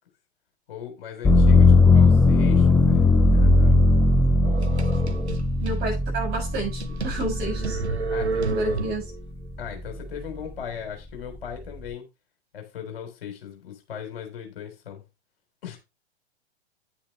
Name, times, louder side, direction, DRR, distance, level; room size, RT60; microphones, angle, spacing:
voice 1, 0.7-3.8 8.1-8.8 9.6-12.1 12.5-15.0 15.6-15.8, left 8 dB, 60° left, 3.7 m, -38 dB
sound 1, 1.2-9.1 9.5-10.3, left 3 dB, 5° left, 0.4 m, -19 dB
sound 2, 4.4-5.8 6.3-6.4 6.8-9.2, right 4 dB, 80° right, 1.2 m, -30 dB
voice 2, 5.6-7.8 8.5-9.0, right 2 dB, 30° right, 7.0 m, -30 dB
10.0 x 8.6 x 3.3 m
figure-of-eight pair, 100°, 33 cm